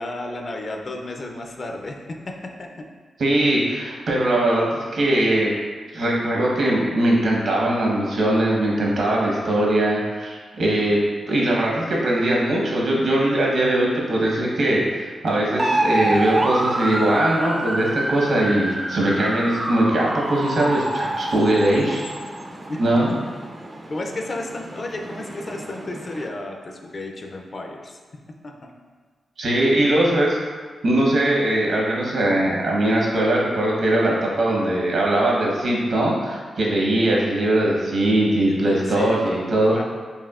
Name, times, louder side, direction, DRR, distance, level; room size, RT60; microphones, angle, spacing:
voice 1, 0.0-2.7 22.7-23.2 23.9-28.0 28.4-28.9 38.5-39.2 39.7-39.8, left 2 dB, 45° left, 2 dB, 0.4 m, -33 dB
voice 2, 3.2-4.7 4.9-5.5 5.9-11.0 11.3-22.0 22.8-23.1 29.4-30.4 30.8-39.8, right 1 dB, 70° right, -3 dB, 0.9 m, -20 dB
sound 1, 15.6-26.3, right 1 dB, 25° right, 0.3 m, -27 dB
5.4 x 2.6 x 2.4 m, 1.5 s
cardioid pair, 95°, 0 cm